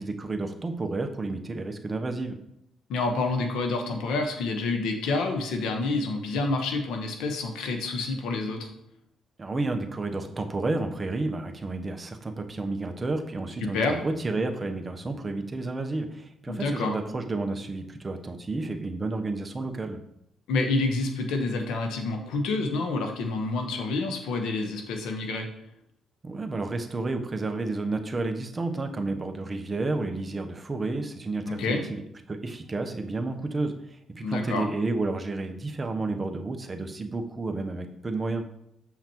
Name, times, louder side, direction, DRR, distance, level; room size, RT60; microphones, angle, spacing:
voice 1, 0.0-2.4 9.4-20.0 26.2-32.0 32.3-38.4, right 3 dB, 25° right, 5 dB, 0.8 m, -31 dB
voice 2, 2.9-8.7 13.6-14.0 16.5-16.9 20.5-25.5 31.4-31.8 34.2-34.7, left 3 dB, 90° left, 4 dB, 1.0 m, -28 dB
7.0 x 5.7 x 2.9 m, 0.77 s
cardioid pair, 90°, 0 cm